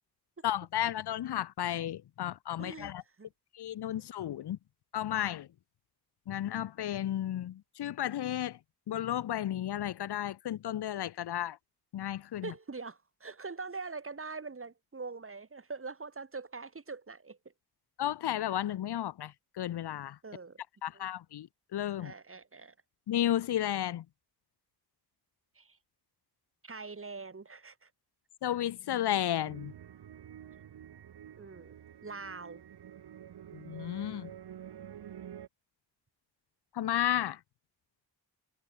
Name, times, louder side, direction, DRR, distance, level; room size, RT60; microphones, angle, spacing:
voice 1, 0.4-3.0 3.5-4.6 4.9-5.5 6.3-8.6 8.9-11.6 11.9-12.5 18.0-20.2 20.8-22.1 23.1-24.0 28.4-29.7 33.5-34.3 36.7-37.4, left 12 dB, 85° left, 0.6 m, -33 dB
voice 2, 2.6-2.9 3.2-3.3 12.4-17.4 20.2-20.6 20.9-21.1 22.0-22.8 25.6-25.8 26.6-27.9 31.4-31.7 32.0-32.6, right 4 dB, 35° right, 1.9 m, -43 dB
sound 1, 29.4-35.5, right 9 dB, 85° right, 1.0 m, -49 dB
wide cardioid pair, 115°, 39 cm